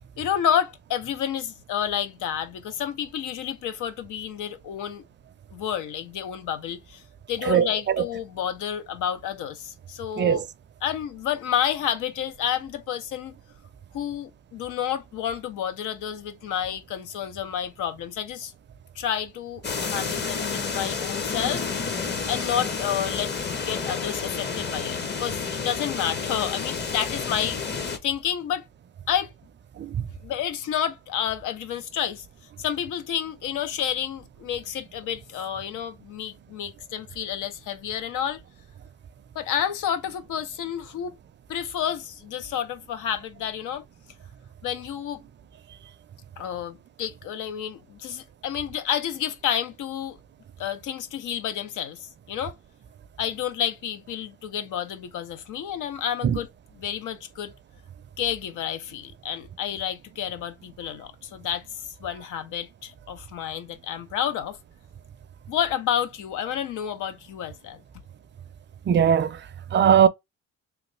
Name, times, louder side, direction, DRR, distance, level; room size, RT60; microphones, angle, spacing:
voice 1, 0.2-5.0 5.5-7.0 7.3-10.4 10.8-13.4 13.9-18.5 19.0-21.7 22.3-23.3 23.6-27.6 28.0-28.6 29.1-29.3 30.2-32.3 32.6-38.4 39.3-41.1 41.5-43.8 44.6-45.2 46.4-50.2 50.6-52.6 53.2-56.5 56.7-57.5 58.2-64.6 65.5-67.8, left 9 dB, 85° left, 0.7 m, -30 dB
sound 1, 19.6-28.0, left 5 dB, 35° left, 0.7 m, -30 dB
voice 2, 68.9-69.3 69.7-70.1, right 8 dB, 40° right, 0.4 m, -19 dB
3.1 x 2.3 x 3.2 m
cardioid pair, 90°, 30 cm